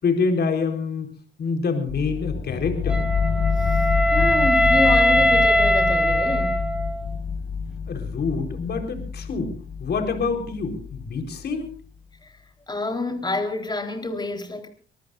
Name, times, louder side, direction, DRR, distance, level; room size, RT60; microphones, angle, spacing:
voice 1, 0.0-1.1 1.4-3.0 7.9-9.5 9.8-11.7, left 4 dB, 55° left, 4.2 m, -26 dB
sound 1, 1.9-11.7, left 6 dB, 75° left, 1.9 m, -27 dB
Wind instrument woodwind instrument, 2.9-7.1, equal, 5° right, 3.6 m, -20 dB
voice 2, 4.1-6.6 12.2-12.4 12.7-14.7, left 3 dB, 20° left, 3.9 m, -28 dB
25.0 x 19.5 x 2.5 m
cardioid pair, 90°, 20 cm